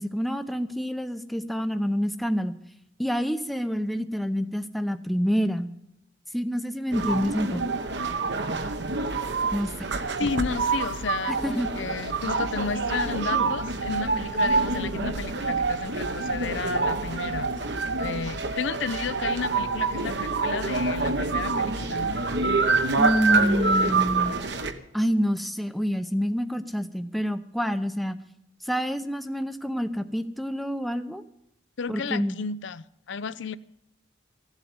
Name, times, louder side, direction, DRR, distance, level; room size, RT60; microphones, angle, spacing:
voice 1, 0.0-2.5 3.0-5.7 6.3-7.6 9.5-9.7 10.2-10.3 11.3-11.7 23.0-24.4 24.9-28.2 28.6-31.2 31.9-32.4, equal, ahead, 0.6 m, -27 dB
sound 1, 6.9-24.7, right 4 dB, 60° right, 1.2 m, -26 dB
voice 2, 10.2-22.2 31.8-33.6, left 5 dB, 70° left, 0.5 m, -33 dB
15.0 x 8.1 x 9.4 m
head